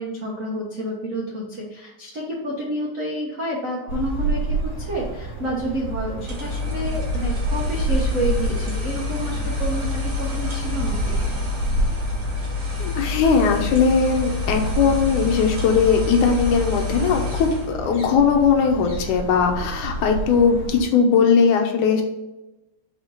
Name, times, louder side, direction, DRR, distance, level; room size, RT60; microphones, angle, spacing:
voice 1, 0.0-11.2, right 1 dB, 75° right, -4 dB, 0.7 m, -29 dB
city park Tel Aviv Israel, 3.9-20.8, right 2 dB, 40° left, 2.1 m, -29 dB
sound 1, 6.2-17.7, left 4 dB, 35° right, 1.5 m, -28 dB
voice 2, 12.8-22.0, left 5 dB, 85° left, 3 dB, 2.4 m, -19 dB
5.4 x 5.2 x 4.0 m, 1.0 s
omnidirectional pair, 3.4 m